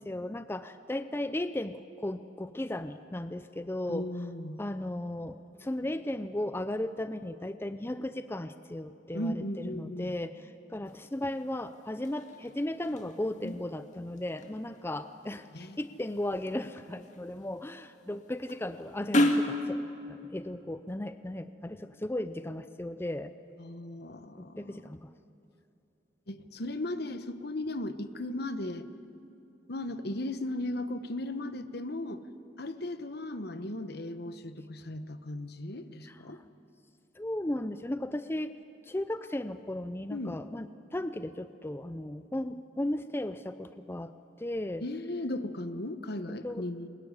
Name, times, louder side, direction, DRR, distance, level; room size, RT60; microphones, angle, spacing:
voice 1, 0.0-4.1 4.6-23.3 24.4-25.1 36.0-36.4 37.2-38.5 38.8-40.7 40.9-44.1 44.4-44.8 46.4-46.7, left 1 dB, 15° left, 11 dB, 0.5 m, -36 dB
voice 2, 3.9-4.6 9.1-10.1 13.4-13.5 15.5-15.8 23.6-24.8 26.3-28.9 29.7-32.2 32.6-36.4 40.1-40.4 44.8-46.9, left 1 dB, 60° left, 11 dB, 1.2 m, -36 dB
sound 1, 10.8-19.6, left 1 dB, 40° left, 2.1 m, -35 dB
22.0 x 21.0 x 9.8 m, 2.9 s
head